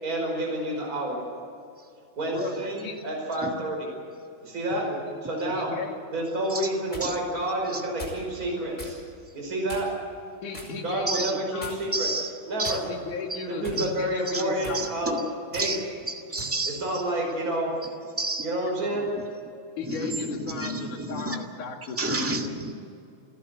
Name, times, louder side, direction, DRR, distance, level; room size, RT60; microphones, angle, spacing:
voice 1, 0.0-1.2 2.2-3.9 4.4-4.8 5.2-5.7 6.1-9.0 9.3-9.9 10.8-12.1 12.5-12.8 13.5-15.3 15.5-15.7 16.7-17.7 18.4-19.1, right 1 dB, 25° right, -1 dB, 5.5 m, -29 dB
voice 2, 2.3-3.0 4.7-5.1 5.5-6.0 10.4-11.7 12.9-14.8 19.8-22.8, left 4 dB, 70° left, 3 dB, 3.7 m, -36 dB
sound 1, 6.5-7.1 8.0-8.2 8.8-9.0 9.7-10.0 10.5-10.8 11.6-12.0 12.6-13.1 13.6-13.9 14.5-14.8 15.5-15.7 16.4-16.6, equal, 15° left, 5.1 m, -40 dB
voice 3, 11.1-11.4 11.9-12.3 12.6-12.8 13.3-13.4 13.8-13.9 14.3-14.4 14.7-15.2 15.5-16.8 18.1-18.4 19.1-19.3 19.8-21.4 22.0-22.8, right 2 dB, 10° right, 2 dB, 0.7 m, -30 dB
29.0 x 12.5 x 8.2 m, 2.5 s
omnidirectional pair, 3.7 m